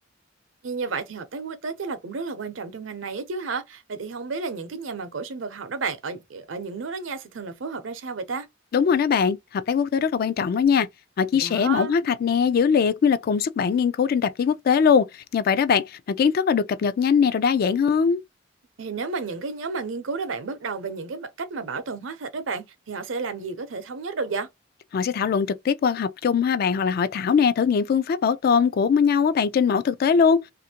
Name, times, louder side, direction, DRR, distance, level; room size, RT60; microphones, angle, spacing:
voice 1, 0.6-8.5 11.3-12.0 18.8-24.5, right 4 dB, 80° right, 0.6 m, -32 dB
voice 2, 8.7-10.9 11.2-18.2 24.9-30.4, left 6 dB, 50° left, 0.3 m, -21 dB
2.5 x 2.5 x 2.8 m
head